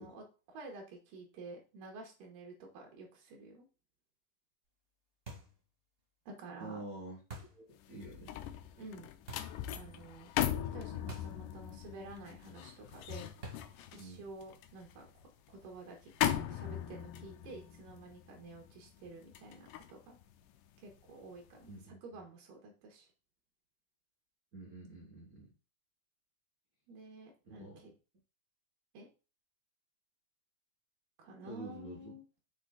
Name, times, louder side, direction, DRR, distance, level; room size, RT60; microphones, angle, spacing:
voice 1, 0.0-3.7 6.3-6.8 8.8-9.1 9.7-10.3 10.7-13.3 13.9-15.1 15.5-16.1 16.5-20.2 20.8-23.1 26.9-27.9 28.9-29.1 31.2-32.2, right 2 dB, 90° right, 1 dB, 3.0 m, -50 dB
sound 1, 5.3-5.6 7.3-7.7 9.3-9.6 11.1-11.4 11.7-11.8 13.4-13.8, right 2 dB, 25° right, 1.4 m, -47 dB
voice 2, 6.6-7.2 7.5-8.3 9.9-10.1 14.0-14.2 21.7-22.0 24.5-25.5 27.5-27.9 31.4-32.1, right 2 dB, 60° right, -1 dB, 0.9 m, -48 dB
sound 2, 7.8-21.1 21.5-21.8, left 11 dB, 85° left, 2.2 m, -39 dB
6.2 x 4.4 x 3.8 m, 0.33 s
omnidirectional pair, 3.8 m